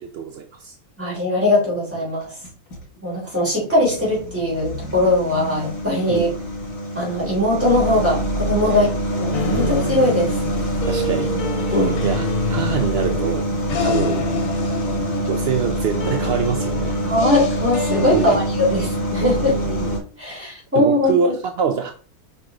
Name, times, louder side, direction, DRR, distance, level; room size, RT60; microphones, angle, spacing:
voice 1, 0.0-0.7 6.1-6.3 8.6-8.9 9.5-9.8 10.8-11.7 12.0-13.5 13.8-14.2 15.2-17.0 18.1-18.4 19.5-20.0 20.3-20.4 20.7-21.9, right 7 dB, 65° right, 0.6 m, -25 dB
voice 2, 1.0-2.3 3.0-6.3 6.9-10.4 11.7-12.0 13.9-14.0 17.0-19.6 20.2-21.3, left 1 dB, 10° right, 3.4 m, -20 dB
sound 1, 2.2-2.8 3.4-20.0, right 1 dB, 60° left, 2.3 m, -25 dB
sound 2, 9.3-18.4, left 4 dB, 75° left, 1.5 m, -28 dB
5.9 x 4.8 x 3.7 m
omnidirectional pair, 1.6 m